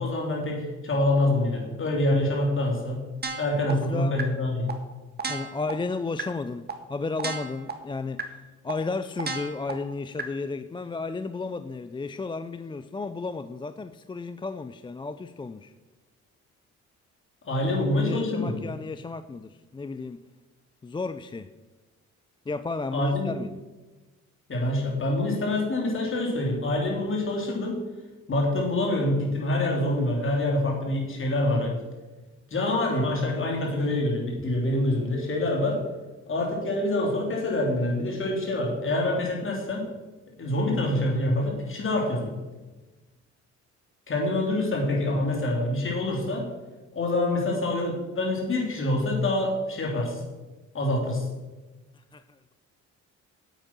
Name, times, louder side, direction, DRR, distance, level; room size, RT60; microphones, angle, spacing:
voice 1, 0.0-3.0 3.4-4.8 17.4-18.6 22.9-23.3 24.5-27.8 28.3-31.8 32.5-35.8 36.3-39.9 40.4-42.3 44.1-46.5 46.9-50.2 50.7-51.2, left 1 dB, 45° left, 0 dB, 3.4 m, -26 dB
sound 1, 3.2-3.7 4.2-4.3 4.7-4.8 5.2-5.7 6.2-6.3 6.7-6.8 7.2-7.7 8.2-8.3 8.7-8.8 9.2-9.7 10.2-10.3, right 4 dB, 35° right, 1.5 m, -31 dB
voice 2, 3.7-4.2 5.3-15.7 17.6-17.7 18.0-20.2 20.8-21.5 22.5-23.6 51.9-52.5, left 3 dB, 15° left, 11 dB, 0.4 m, -33 dB
8.9 x 8.0 x 6.1 m, 1.2 s
cardioid pair, 90°, 30 cm